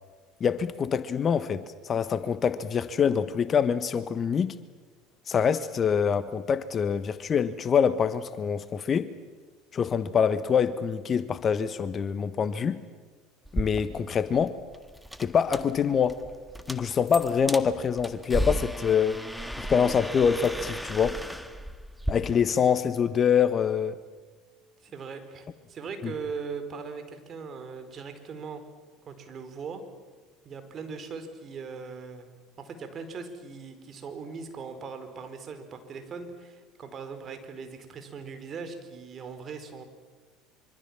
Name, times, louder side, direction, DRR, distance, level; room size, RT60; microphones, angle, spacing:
voice 1, 0.4-4.5 5.3-9.1 9.7-12.8 13.5-14.6 15.2-16.2 16.7-19.2 19.6-21.2 22.1-23.9 26.0-26.1, left 7 dB, 35° left, 1.3 m, -25 dB
sound 1, 13.4-22.1, equal, ahead, 1.7 m, -35 dB
voice 2, 24.8-28.6 29.0-29.8 30.4-32.3 32.6-39.8, right 5 dB, 40° right, 4.5 m, -40 dB
25.5 x 25.0 x 7.4 m
hypercardioid pair, 70°, 0 cm